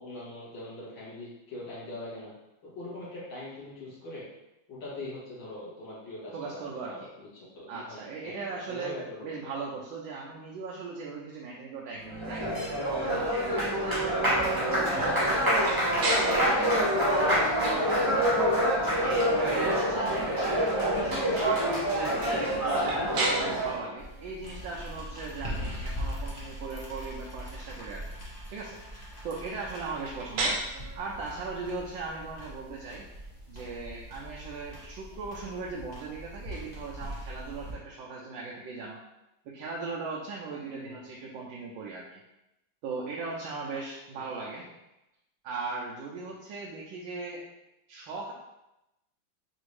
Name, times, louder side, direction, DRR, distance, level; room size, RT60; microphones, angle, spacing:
voice 1, 0.0-2.3 2.6-4.2 4.7-8.4 8.7-9.2 30.3-30.5 40.7-41.0 44.1-44.5, left 1 dB, 70° left, -8 dB, 2.2 m, -42 dB
voice 2, 6.3-6.9 7.7-8.9 9.2-12.6 13.0-22.2 22.6-28.2 28.5-30.6 30.9-33.1 33.5-39.0 39.5-42.2 42.8-44.7 45.4-47.4 47.9-48.3, right 4 dB, 80° right, -2 dB, 1.3 m, -38 dB
Applause, 12.0-23.8, equal, 20° right, 0.6 m, -26 dB
sound 1, 15.6-35.4, right 2 dB, 60° right, 1.2 m, -39 dB
sound 2, 24.0-37.7, equal, 40° left, 0.6 m, -41 dB
5.0 x 2.7 x 3.1 m, 0.93 s
omnidirectional pair, 2.2 m